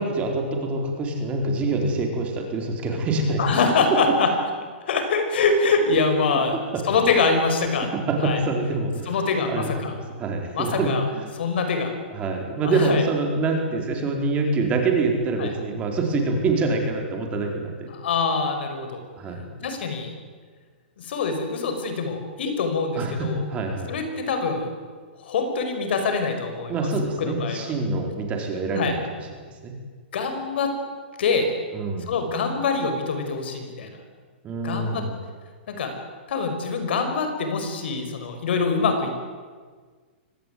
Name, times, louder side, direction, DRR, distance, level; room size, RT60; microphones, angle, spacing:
voice 1, 0.0-3.4 6.7-6.8 8.1-9.1 9.4-9.9 10.2-11.3 12.1-17.9 19.2-19.5 23.0-23.9 26.7-29.0 29.4-29.7 31.7-32.1 34.4-35.1, right 3 dB, 20° right, 2 dB, 4.4 m, -25 dB
voice 2, 3.4-4.3 4.8-6.6 6.8-7.9 8.2-8.4 9.1-10.0 10.5-11.0 11.4-11.9 12.6-13.0 15.4-15.5 17.9-19.0 19.6-20.1 21.0-23.4 23.9-24.7 25.2-26.8 27.2-27.7 28.7-29.0 30.1-30.7 31.2-31.5 32.1-34.0 34.6-35.0 35.7-35.9 36.3-39.1, left 4 dB, 70° left, 6 dB, 5.8 m, -24 dB
24.5 x 18.5 x 9.4 m, 1.5 s
hypercardioid pair, 155°, 6 cm